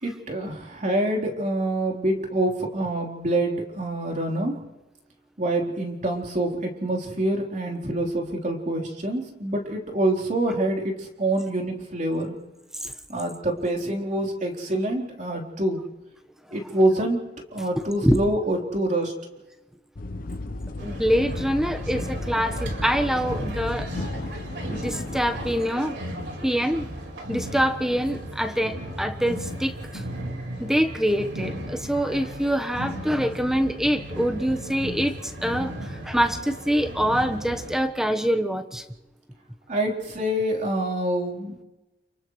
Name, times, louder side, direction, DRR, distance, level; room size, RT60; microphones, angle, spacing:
voice 1, 0.0-4.6 5.4-12.4 13.1-15.8 16.5-17.2 17.5-19.1 39.7-41.5, right 1 dB, 45° right, 1 dB, 3.9 m, -26 dB
voice 2, 17.7-18.3 20.8-23.9 24.7-25.9 26.4-26.9 27.3-30.0 30.6-38.8, equal, 5° right, 5 dB, 1.2 m, -25 dB
sound 1, 20.0-25.6, left 2 dB, 50° left, 0.8 m, -34 dB
sound 2, 20.8-37.8, equal, 75° right, 4.6 m, -35 dB
30.0 x 30.0 x 3.2 m, 1.1 s
head